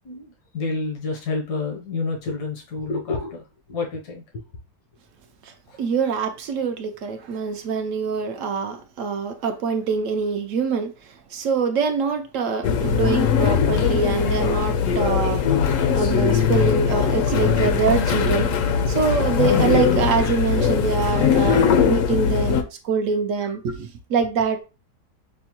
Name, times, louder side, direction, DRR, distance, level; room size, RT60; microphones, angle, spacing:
voice 1, 0.0-3.4 3.7-4.2 5.7-5.8, left 3 dB, 85° left, 1.4 m, -29 dB
voice 2, 5.4-15.4 15.9-24.6, right 5 dB, 70° right, 0.8 m, -24 dB
sound 1, 12.6-22.6, left 7 dB, 70° left, 0.8 m, -20 dB
6.1 x 2.1 x 2.9 m
omnidirectional pair, 1.7 m